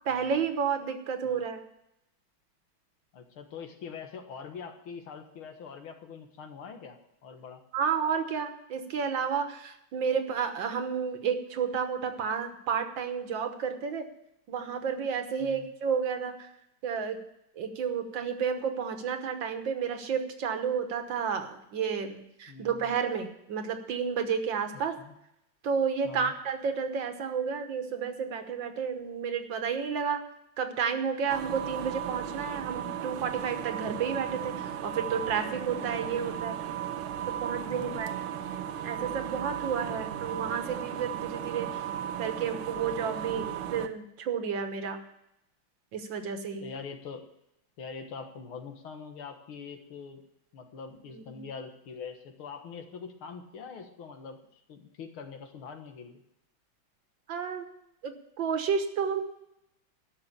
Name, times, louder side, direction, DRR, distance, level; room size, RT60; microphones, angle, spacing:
voice 1, 0.0-1.6 7.7-14.1 14.5-16.5 16.8-17.2 17.6-24.9 25.6-30.2 30.6-36.5 37.4-38.1 38.8-41.7 42.2-45.0 45.9-46.7 51.1-51.4 57.3-57.7 58.0-58.1 58.4-59.2, right 6 dB, 65° right, 7 dB, 1.8 m, -31 dB
voice 2, 3.1-7.6 15.4-15.7 22.5-22.9 25.0-25.1 26.0-26.3 37.7-38.0 39.9-40.0 46.6-47.2 47.8-50.2 50.5-54.4 54.7-56.2, left 5 dB, 85° left, 5 dB, 2.2 m, -43 dB
sound 1, 31.3-43.9, right 10 dB, 90° right, 1.7 m, -36 dB
12.5 x 6.2 x 8.4 m, 0.81 s
omnidirectional pair, 2.3 m